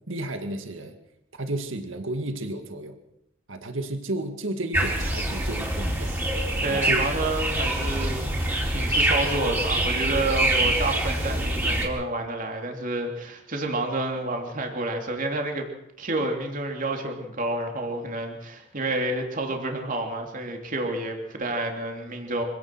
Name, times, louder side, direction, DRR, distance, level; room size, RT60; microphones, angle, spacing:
voice 1, 0.1-1.0 1.4-2.9 3.5-6.1 6.7-7.0, right 1 dB, 70° right, 6 dB, 2.0 m, -32 dB
sound 1, 4.7-11.9, right 1 dB, 10° right, 4.4 m, -25 dB
voice 2, 6.6-15.7 16.0-22.4, right 2 dB, 45° right, 2 dB, 3.2 m, -29 dB
25.5 x 17.0 x 6.1 m, 0.80 s
head